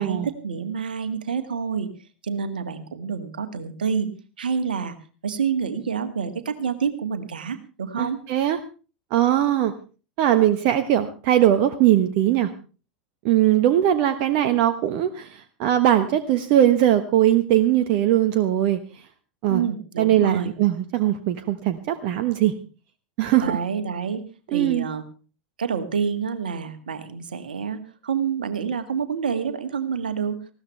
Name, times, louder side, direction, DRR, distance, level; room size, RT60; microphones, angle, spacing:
voice 1, 0.0-1.9 2.2-4.1 4.4-5.0 5.2-8.2 19.5-20.5 23.4-24.2 24.5-25.0 25.6-30.4, right 6 dB, 70° right, 9 dB, 1.9 m, -28 dB
voice 2, 8.0-8.6 9.1-9.7 10.2-12.5 13.2-18.8 19.4-19.6 20.0-22.5 23.2-23.6 24.5-24.9, right 12 dB, 45° right, 9 dB, 1.2 m, -20 dB
19.5 x 16.0 x 3.3 m, 0.35 s
figure-of-eight pair, 85°, 5 cm